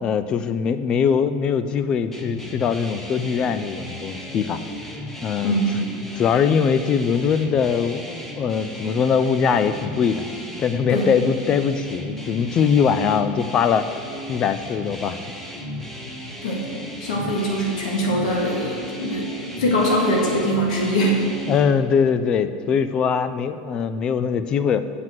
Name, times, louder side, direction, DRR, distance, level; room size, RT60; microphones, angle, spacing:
voice 1, 0.0-4.6 5.2-5.6 6.1-10.2 10.6-13.9 14.3-15.2 21.5-24.8, left 7 dB, 20° left, 12 dB, 0.3 m, -21 dB
sound 1, 2.1-21.7, equal, 5° left, 0.7 m, -35 dB
voice 2, 17.0-19.3 19.6-21.2, equal, 90° left, -1 dB, 1.8 m, -22 dB
7.6 x 5.9 x 7.7 m, 2.5 s
supercardioid pair, 175°, 4 cm